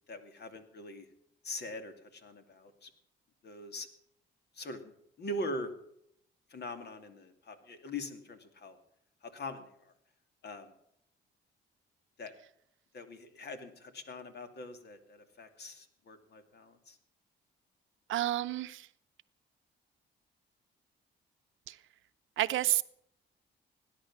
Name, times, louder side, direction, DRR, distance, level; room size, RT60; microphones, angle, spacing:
voice 1, 0.1-1.1 1.4-2.9 3.4-3.9 4.6-4.8 5.2-5.7 6.5-8.8 9.2-9.9 10.4-10.7 12.2-12.3 12.9-17.0, left 1 dB, 55° left, 8 dB, 2.5 m, -42 dB
voice 2, 18.1-18.9 21.7-21.8 22.4-22.8, right 14 dB, 80° right, 14 dB, 0.8 m, -30 dB
17.5 x 10.5 x 7.3 m, 0.72 s
cardioid pair, 90°, 20 cm